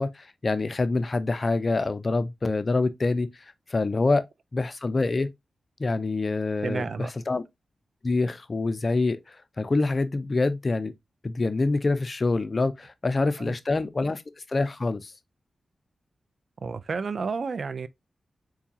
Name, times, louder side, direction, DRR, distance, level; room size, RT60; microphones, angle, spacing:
voice 1, 0.0-3.3 3.7-4.3 4.5-5.3 5.8-7.4 8.0-10.9 11.2-14.2 14.5-15.1, left 3 dB, 50° left, 0.5 m, -26 dB
voice 2, 6.6-7.1 13.4-13.5 16.6-17.9, right 5 dB, 70° right, 0.3 m, -31 dB
4.5 x 2.3 x 2.7 m
cardioid pair, 40°, 0 cm